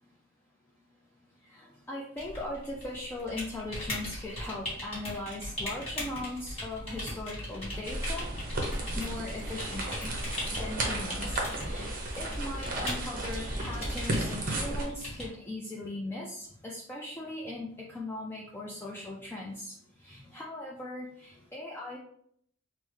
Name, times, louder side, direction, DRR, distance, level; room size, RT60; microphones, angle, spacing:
voice 1, 1.5-10.1 10.6-19.7 20.0-22.0, left 1 dB, 10° left, -4 dB, 0.3 m, -39 dB
sound 1, 2.2-15.3, left 1 dB, 30° left, 1.3 m, -39 dB
sound 2, 7.8-14.9, right 1 dB, 45° right, 0.7 m, -34 dB
3.4 x 2.0 x 3.1 m, 0.66 s
head